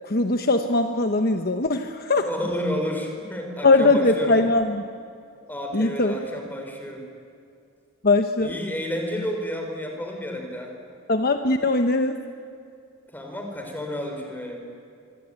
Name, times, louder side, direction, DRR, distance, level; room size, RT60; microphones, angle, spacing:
voice 1, 0.1-2.3 3.6-4.8 5.7-6.1 8.0-8.5 11.1-12.2, left 2 dB, 45° left, 6 dB, 1.1 m, -20 dB
voice 2, 2.2-4.4 5.5-7.0 8.4-10.7 13.1-14.6, equal, 10° left, 2 dB, 4.8 m, -31 dB
25.0 x 24.5 x 9.2 m, 2.4 s
head